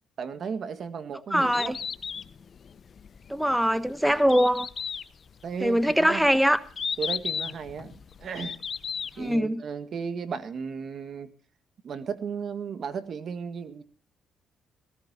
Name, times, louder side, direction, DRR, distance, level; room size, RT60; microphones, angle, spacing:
voice 1, 0.2-1.8 5.4-6.3 7.0-8.6 9.2-11.3 11.8-13.8, right 6 dB, 55° right, 10 dB, 1.8 m, -35 dB
Bird, 1.3-9.3, left 6 dB, 50° left, 0.8 m, -35 dB
voice 2, 1.3-1.8 3.3-4.7 5.6-6.6 9.2-9.6, equal, 5° right, 13 dB, 1.0 m, -22 dB
18.5 x 18.0 x 2.9 m, 0.40 s
cardioid pair, 90°, 0 cm